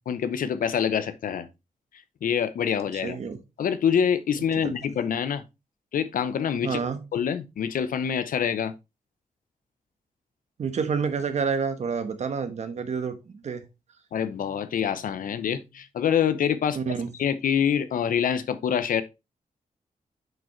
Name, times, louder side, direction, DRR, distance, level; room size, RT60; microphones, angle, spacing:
voice 1, 0.1-1.5 2.2-3.2 3.6-5.4 5.9-6.8 7.1-8.7 14.1-16.8 17.2-19.0, left 8 dB, 80° left, 0.8 m, -26 dB
voice 2, 3.0-3.4 4.6-4.7 6.6-7.0 10.6-13.6 16.7-17.1, right 6 dB, 55° right, 1.2 m, -28 dB
7.7 x 5.2 x 3.2 m
wide cardioid pair, 155°, 14 cm